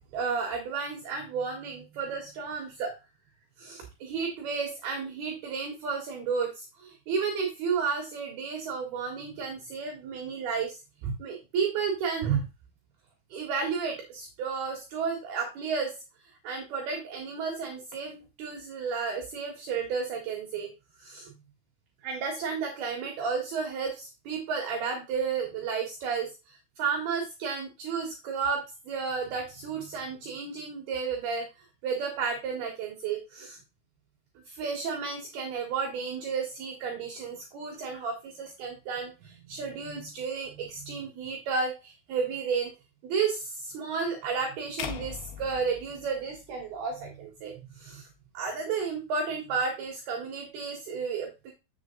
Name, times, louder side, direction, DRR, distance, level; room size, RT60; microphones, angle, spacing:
voice 1, 0.0-2.9 3.6-12.5 13.3-16.0 16.4-20.7 21.0-21.3 22.0-31.5 31.8-33.6 34.5-42.7 43.0-48.1 48.3-51.5, right 5 dB, 65° right, 2 dB, 3.2 m, -32 dB
sound 1, 44.8-47.0, left 10 dB, 80° left, 2.2 m, -40 dB
7.9 x 7.0 x 3.8 m, 0.28 s
omnidirectional pair, 5.4 m